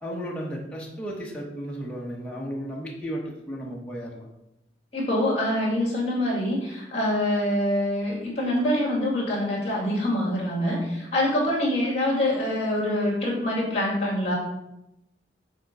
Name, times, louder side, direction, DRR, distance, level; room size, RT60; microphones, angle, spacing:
voice 1, 0.0-4.3, equal, 5° left, -3 dB, 0.9 m, -34 dB
voice 2, 4.9-14.3, left 1 dB, 35° left, -3 dB, 2.3 m, -25 dB
6.5 x 3.7 x 5.3 m, 0.89 s
head